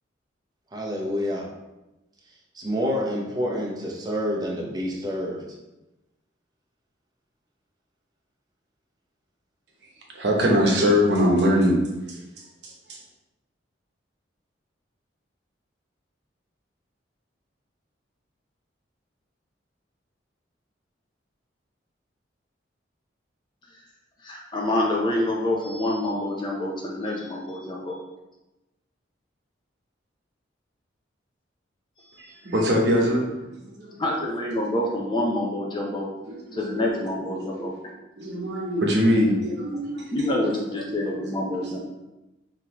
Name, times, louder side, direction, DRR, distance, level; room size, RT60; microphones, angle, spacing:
voice 1, 0.7-1.5 2.5-5.4, equal, 20° right, -3 dB, 0.8 m, -28 dB
voice 2, 10.1-11.8 32.4-33.2 33.8-34.0 36.3-36.8 38.2-40.0 40.9-41.8, equal, 60° right, -1 dB, 1.0 m, -22 dB
voice 3, 24.2-28.0 34.0-36.1 36.5-37.7 40.1-41.8, left 1 dB, 25° left, -2 dB, 0.7 m, -27 dB
5.7 x 2.9 x 3.0 m, 0.99 s
head